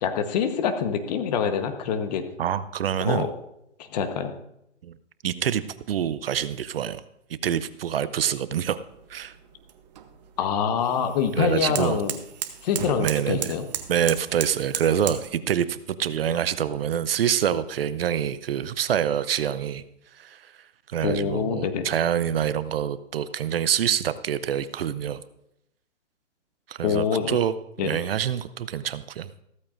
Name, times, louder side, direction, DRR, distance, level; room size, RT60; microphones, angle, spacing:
voice 1, 0.0-2.2 3.0-3.3 3.9-4.3 10.4-12.1 12.6-13.6 21.0-21.9 26.8-27.4 27.8-27.9, left 7 dB, 35° left, 8 dB, 1.1 m, -25 dB
voice 2, 2.4-3.3 4.8-4.9 5.2-5.6 5.9-7.0 7.3-8.8 9.1-9.3 11.4-12.0 13.0-13.5 13.9-19.8 20.1-20.5 20.9-25.2 26.7-27.5 27.8-29.3, right 9 dB, 55° right, 14 dB, 0.6 m, -26 dB
sound 1, 8.5-15.3, right 10 dB, 35° right, 0.9 m, -36 dB
15.0 x 14.0 x 2.5 m, 0.81 s
hypercardioid pair, 150°, 36 cm